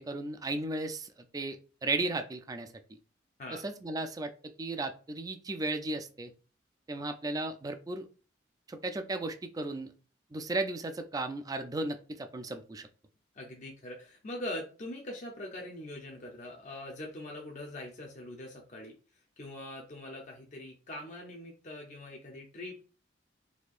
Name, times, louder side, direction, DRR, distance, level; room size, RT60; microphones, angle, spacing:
voice 1, 0.0-1.6 1.8-2.7 3.6-6.3 6.9-8.1 8.7-9.9 10.3-12.9, right 2 dB, 20° right, 7 dB, 0.4 m, -35 dB
voice 2, 13.3-18.9 19.4-22.8, left 1 dB, 40° left, 0 dB, 0.6 m, -42 dB
4.2 x 2.7 x 2.4 m, 0.36 s
head